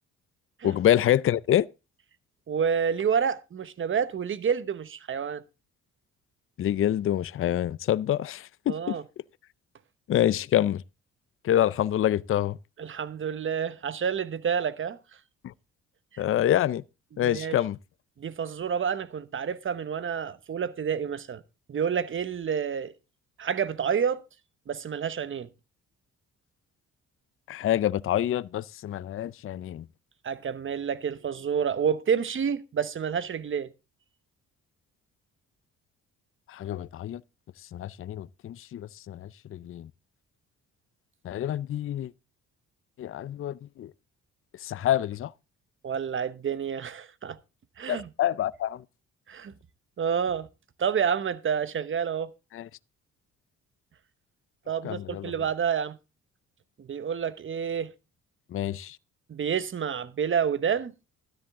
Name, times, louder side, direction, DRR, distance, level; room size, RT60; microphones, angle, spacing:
voice 1, 0.6-1.7 6.6-9.0 10.1-10.8 11.4-12.6 15.4-15.5 16.2-16.8 17.2-17.8 27.5-29.9 36.5-37.2 37.7-39.9 41.2-42.1 43.0-43.9 44.6-45.3 47.9-48.8 52.5-52.7 54.8-55.3 58.5-59.0, left 12 dB, 45° left, 0.5 m, -26 dB
voice 2, 2.5-5.4 8.7-9.0 12.8-15.0 16.1-16.2 17.1-17.6 18.2-21.4 21.7-22.9 23.4-24.2 24.7-25.5 30.2-33.7 45.8-47.4 47.8-48.1 49.3-49.5 50.0-50.5 50.8-52.3 54.7-56.0 56.8-57.9 59.3-60.9, right 7 dB, 40° right, 1.0 m, -29 dB
13.0 x 10.5 x 3.6 m
cardioid pair, 90°, 30 cm